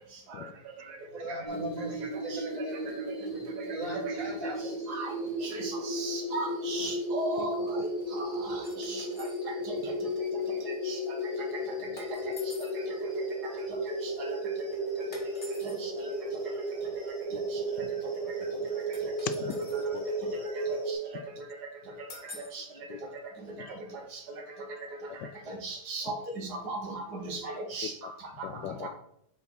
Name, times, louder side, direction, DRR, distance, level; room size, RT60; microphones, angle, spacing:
voice 1, 1.1-2.7 3.7-4.9, equal, 50° right, -1 dB, 2.0 m, -39 dB
sound 1, 1.5-20.9, right 1 dB, 20° right, 2.9 m, -34 dB
voice 2, 5.4-7.8 8.2-9.1 9.7-9.8 10.9-11.0 14.2-14.4 15.8-16.1 20.9-21.0 22.5-22.6 25.5-27.9 28.4-28.5 28.8-28.9, right 2 dB, 70° right, 2 dB, 1.8 m, -36 dB
sound 2, 8.6-9.4 12.0-12.8 15.1-15.8 18.9-19.9 22.1-22.6, left 2 dB, 35° left, 1.9 m, -48 dB
voice 3, 19.3-20.0 22.9-23.0 23.6-23.7 25.2-25.3 27.8-27.9 28.4-28.9, left 10 dB, 90° left, 12 dB, 1.3 m, -40 dB
7.1 x 4.3 x 4.0 m, 0.73 s
omnidirectional pair, 1.8 m